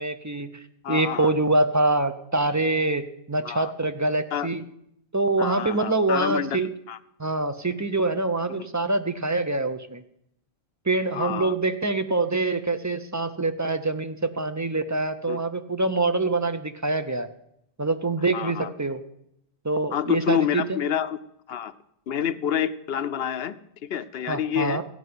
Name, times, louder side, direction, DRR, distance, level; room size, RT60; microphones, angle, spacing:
voice 1, 0.0-4.6 5.1-6.7 7.2-10.0 10.8-17.3 17.8-19.0 19.6-20.8 24.3-24.8, right 2 dB, 20° right, 9 dB, 0.5 m, -25 dB
voice 2, 0.8-1.3 3.4-3.7 4.3-4.5 5.4-7.0 8.6-8.7 11.1-11.5 15.3-15.4 18.3-18.7 19.9-21.2 21.5-21.7 22.1-24.8, left 9 dB, 65° left, 14 dB, 0.8 m, -28 dB
15.0 x 5.6 x 9.5 m, 0.76 s
omnidirectional pair, 1.1 m